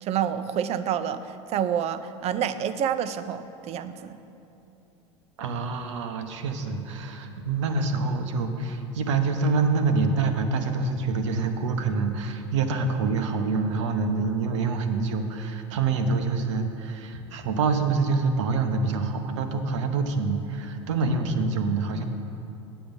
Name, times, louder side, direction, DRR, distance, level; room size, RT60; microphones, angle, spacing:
voice 1, 0.0-4.2, right 9 dB, 45° right, 12 dB, 0.5 m, -28 dB
voice 2, 5.4-22.0, right 4 dB, 75° right, 6 dB, 0.9 m, -26 dB
9.1 x 7.8 x 5.3 m, 2.9 s
hypercardioid pair, 85°, 16 cm